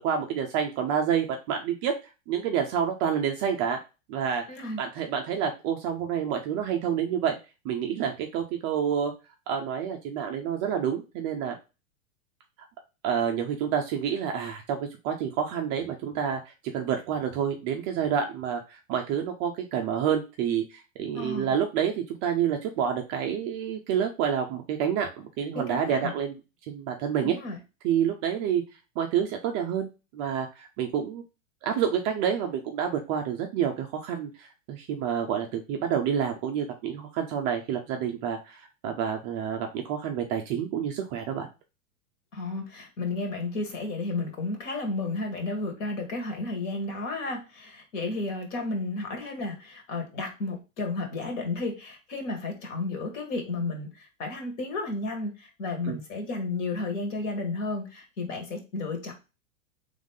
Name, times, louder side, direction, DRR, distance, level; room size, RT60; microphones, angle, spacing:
voice 1, 0.0-2.0 2.3-3.8 4.1-4.4 4.8-7.4 7.6-9.1 9.5-11.6 13.0-26.4 26.7-27.4 27.8-28.6 29.0-31.2 31.6-41.5 55.8-56.0, right 8 dB, 25° right, 3 dB, 0.3 m, -28 dB
voice 2, 4.5-4.8 21.1-21.5 25.5-26.1 27.2-27.6 42.3-59.1, left 2 dB, 60° left, 3 dB, 1.9 m, -32 dB
3.6 x 3.2 x 3.6 m, 0.29 s
hypercardioid pair, 120°, 42 cm